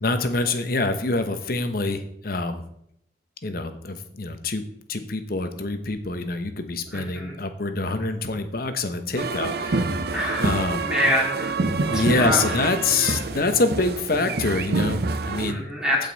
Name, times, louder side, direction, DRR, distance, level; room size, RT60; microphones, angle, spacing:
voice 1, 0.0-2.6 3.4-4.6 4.9-10.0 10.4-10.9 11.9-15.6, left 3 dB, 55° left, 8 dB, 1.0 m, -26 dB
voice 2, 6.9-7.4 10.1-11.6 11.9-12.5 15.5-16.1, equal, 5° right, -4 dB, 2.8 m, -26 dB
sound 1, 9.2-15.5, right 3 dB, 60° right, 0.6 m, -27 dB
15.5 x 5.4 x 4.1 m, 0.72 s
head